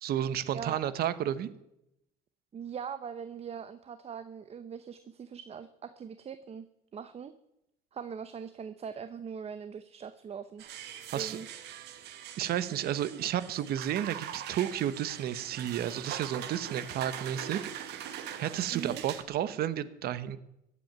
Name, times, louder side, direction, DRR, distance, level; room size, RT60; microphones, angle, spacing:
voice 1, 0.0-1.5 11.1-11.4 12.4-17.6 18.4-20.4, right 10 dB, 65° right, 15 dB, 1.0 m, -32 dB
voice 2, 2.5-6.6 6.9-7.3 7.9-10.6 11.0-11.5 18.7-19.0, right 7 dB, 35° right, 12 dB, 0.8 m, -41 dB
sound 1, 10.6-19.2, right 10 dB, 85° right, 1.5 m, -42 dB
15.0 x 8.5 x 9.3 m, 0.84 s
cardioid pair, 110°, 17 cm